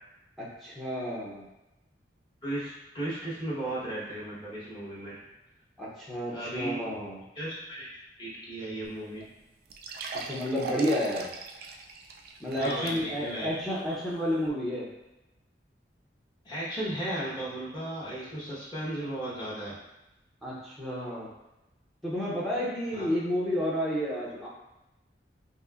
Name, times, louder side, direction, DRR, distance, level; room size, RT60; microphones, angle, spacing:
voice 1, 0.4-1.5 5.8-7.2 10.2-11.3 12.4-14.9 20.4-21.3 22.0-24.5, equal, ahead, -7 dB, 0.7 m, -31 dB
voice 2, 2.4-5.2 6.3-6.8 7.3-7.9 8.2-9.3 12.6-13.5 13.7-13.9 16.4-19.8 22.9-23.1, right 1 dB, 25° left, -8 dB, 1.2 m, -35 dB
sound 1, 8.8-8.9 9.2-9.3 9.7-13.3 13.8-13.9 14.5-14.6, right 3 dB, 55° right, 0.3 m, -39 dB
5.3 x 2.1 x 2.4 m, 0.96 s
head